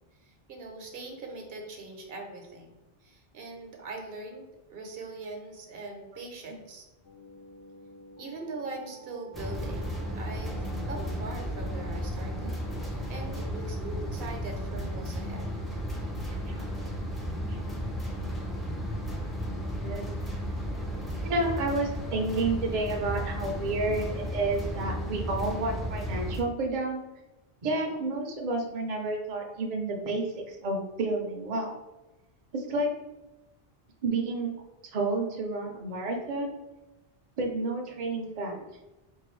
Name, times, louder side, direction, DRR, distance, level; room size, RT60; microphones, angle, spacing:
voice 1, 0.2-2.7 3.0-6.8 8.2-12.5 12.8-15.5, right 3 dB, 70° right, 1 dB, 0.9 m, -41 dB
sound 1, 7.0-13.5, right 2 dB, 90° left, 1.2 m, -50 dB
sound 2, 9.3-26.4, equal, ahead, 0.4 m, -34 dB
voice 2, 16.3-16.6 17.5-17.7 19.8-20.1 21.2-27.0 27.6-31.7 32.5-32.9 34.0-34.5 34.9-36.5 37.4-38.7, right 2 dB, 45° right, 1 dB, 0.6 m, -30 dB
4.6 x 2.2 x 3.1 m, 1.0 s
omnidirectional pair, 1.0 m